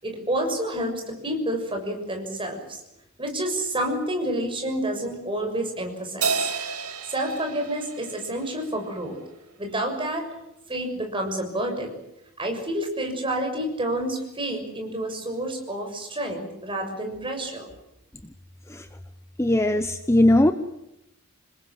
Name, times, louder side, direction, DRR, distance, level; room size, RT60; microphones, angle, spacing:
voice 1, 0.0-2.8 3.2-6.5 7.0-9.2 9.6-10.3 10.7-11.9 12.4-17.7, right 1 dB, 25° right, 3 dB, 6.7 m, -29 dB
Crash cymbal, 6.2-8.9, right 5 dB, 85° right, 2.5 m, -30 dB
voice 2, 19.4-20.5, left 1 dB, 10° left, 9 dB, 1.0 m, -19 dB
27.5 x 21.0 x 7.9 m, 0.85 s
head